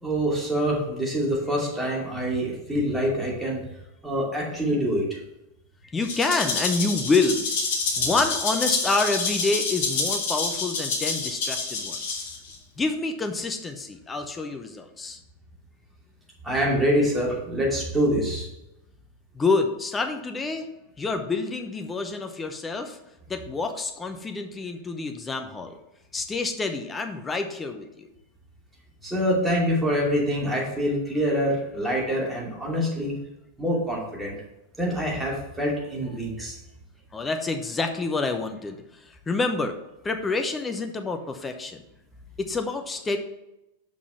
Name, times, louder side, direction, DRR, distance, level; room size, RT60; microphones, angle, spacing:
voice 1, 0.0-3.6 4.0-5.2 16.4-18.5 29.0-33.2 33.6-34.4 34.8-36.6, equal, 5° right, -4 dB, 2.5 m, -25 dB
voice 2, 5.8-7.5 8.0-12.3 12.8-15.2 19.3-20.7 21.0-23.0 23.3-25.7 26.1-28.1 37.1-39.8 40.0-41.8 42.4-43.2, left 3 dB, 15° left, 6 dB, 0.7 m, -27 dB
Rattle (instrument), 6.0-12.5, left 4 dB, 50° left, 1.5 m, -28 dB
6.1 x 6.0 x 4.5 m, 0.91 s
figure-of-eight pair, 90°, 0 cm